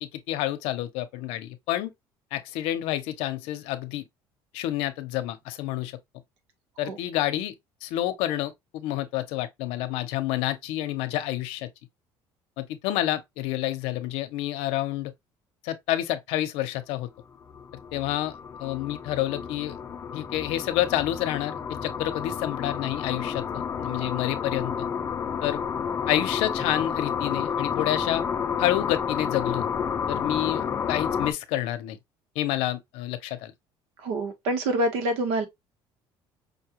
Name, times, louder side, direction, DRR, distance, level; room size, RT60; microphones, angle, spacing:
voice 1, 0.0-1.9 2.3-4.0 4.5-6.0 6.8-7.5 7.8-11.7 12.6-15.1 15.6-17.1 17.9-19.8 20.1-24.9 25.4-25.6 26.1-28.2 28.6-29.7 30.1-32.0 32.3-33.5, left 14 dB, 85° left, 0.7 m, -29 dB
sound 1, 17.2-31.3, left 7 dB, 25° left, 0.5 m, -30 dB
voice 2, 34.0-35.5, right 1 dB, 80° right, 1.2 m, -26 dB
5.3 x 2.3 x 2.8 m
cardioid pair, 155°, 10 cm